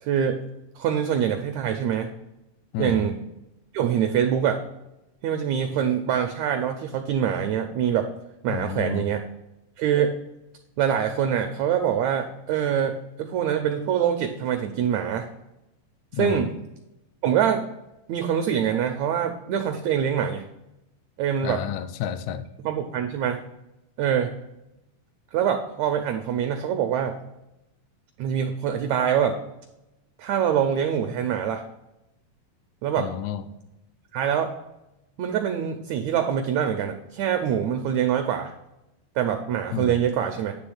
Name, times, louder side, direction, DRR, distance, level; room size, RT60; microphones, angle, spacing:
voice 1, 0.0-0.4 0.7-2.1 2.8-3.2 3.7-4.6 5.2-8.1 8.4-9.2 9.8-10.2 10.8-15.3 16.1-16.5 17.2-17.7 18.1-20.4 21.2-21.6 22.6-23.4 24.0-24.3 25.3-27.2 28.2-29.4 30.2-31.6 32.8-33.1 34.1-34.5 35.2-38.5 39.2-40.6, right 8 dB, 90° right, 6 dB, 1.5 m, -24 dB
voice 2, 2.7-3.1 8.5-9.1 16.1-16.5 21.4-22.4 33.0-33.4 39.7-40.0, left 9 dB, 80° left, 11 dB, 1.7 m, -30 dB
9.8 x 3.5 x 6.4 m, 0.90 s
omnidirectional pair, 3.9 m